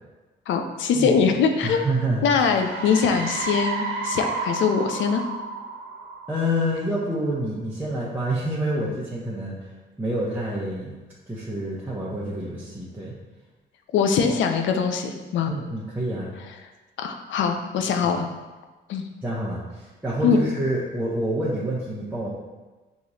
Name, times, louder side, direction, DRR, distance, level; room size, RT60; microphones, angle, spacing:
voice 1, 0.5-1.8 2.2-5.2 13.9-15.5 17.0-18.3 18.9-19.0 20.2-20.4, left 6 dB, 70° left, 5 dB, 0.5 m, -22 dB
voice 2, 1.6-2.3 6.3-9.5 10.0-10.9 11.3-13.1 15.5-16.3 19.2-22.3, right 1 dB, 10° right, -8 dB, 0.8 m, -27 dB
sound 1, 2.4-7.0, right 4 dB, 75° right, 0.8 m, -31 dB
5.7 x 3.0 x 2.7 m, 1.2 s
cardioid pair, 90°, 20 cm